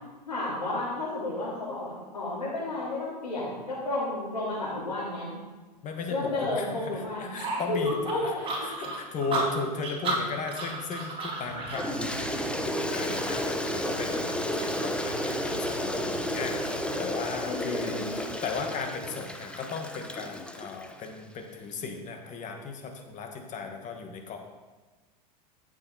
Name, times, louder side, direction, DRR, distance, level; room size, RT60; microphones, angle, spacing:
voice 1, 0.2-5.3 6.1-7.4 7.7-8.7 17.4-18.3, left 2 dB, 90° left, -10 dB, 3.9 m, -32 dB
voice 2, 5.8-8.3 8.6-24.4, left 4 dB, 35° left, 4 dB, 1.7 m, -36 dB
sound 1, 7.4-11.9, right 3 dB, 25° right, 3.6 m, -32 dB
sound 2, 11.5-17.1, right 7 dB, 70° right, 0.9 m, -43 dB
Toilet flush, 11.8-21.1, left 1 dB, 5° left, 1.0 m, -32 dB
14.5 x 7.1 x 4.2 m, 1.3 s
hypercardioid pair, 90°, 21 cm